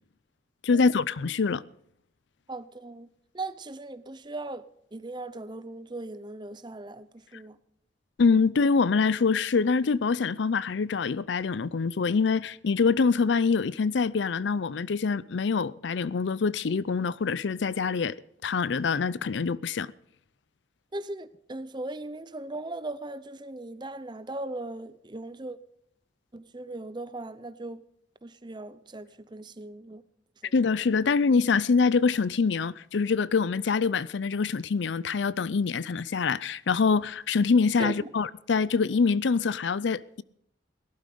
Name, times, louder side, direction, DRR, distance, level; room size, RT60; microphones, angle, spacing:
voice 1, 0.6-1.6 8.2-18.1 18.4-19.9 30.5-40.2, left 5 dB, 70° left, 0.5 m, -25 dB
voice 2, 2.5-3.1 3.3-4.6 4.9-7.6 20.9-25.6 26.3-27.8 28.2-30.0 30.4-30.5 37.8-38.1, right 2 dB, 25° right, 0.7 m, -38 dB
18.0 x 12.0 x 5.1 m
head